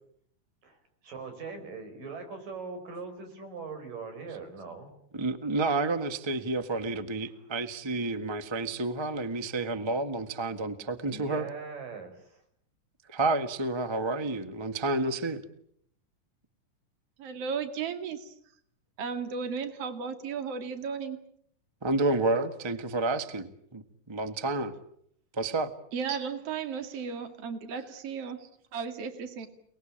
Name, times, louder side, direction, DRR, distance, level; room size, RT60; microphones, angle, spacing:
voice 1, 0.6-4.9 11.0-12.4, right 4 dB, 85° right, 7 dB, 6.8 m, -41 dB
voice 2, 5.1-11.5 13.1-15.4 21.8-23.8 24.1-24.7 25.3-25.7, right 2 dB, 30° right, 10 dB, 0.4 m, -30 dB
voice 3, 17.2-18.3 19.0-21.2 25.9-29.5, right 6 dB, 50° right, 8 dB, 3.2 m, -35 dB
29.5 x 21.0 x 8.8 m, 0.69 s
omnidirectional pair, 3.8 m